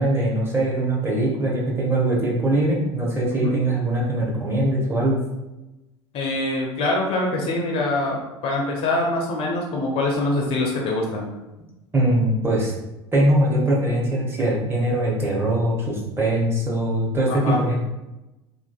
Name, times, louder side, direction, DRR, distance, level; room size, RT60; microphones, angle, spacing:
voice 1, 0.0-5.2 11.9-12.7 13.1-17.8, right 1 dB, 15° right, -4 dB, 0.8 m, -22 dB
voice 2, 6.1-11.3 17.3-17.6, left 2 dB, 40° left, -1 dB, 0.5 m, -24 dB
2.5 x 2.3 x 2.2 m, 1.0 s
figure-of-eight pair, 75°, 15 cm